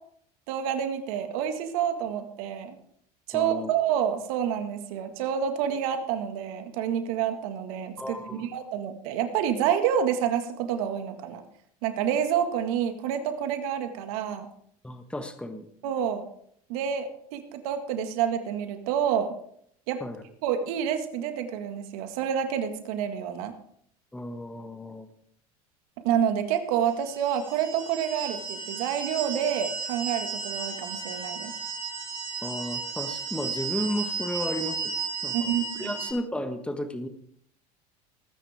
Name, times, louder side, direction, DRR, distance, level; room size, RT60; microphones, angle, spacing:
voice 1, 0.5-2.8 3.3-11.4 11.8-14.5 15.8-16.2 16.7-19.3 19.9-20.0 20.4-23.5 26.0-31.5 35.3-35.9, right 9 dB, 70° right, 7 dB, 1.9 m, -28 dB
voice 2, 3.3-3.7 8.0-8.5 14.8-15.7 20.0-20.2 24.1-25.1 32.4-35.0 35.2-35.5 35.8-37.1, left 1 dB, 5° left, 8 dB, 1.4 m, -33 dB
sound 1, 27.1-36.1, right 5 dB, 30° right, 6.2 m, -34 dB
19.0 x 9.9 x 3.6 m, 0.67 s
hypercardioid pair, 85°, 19 cm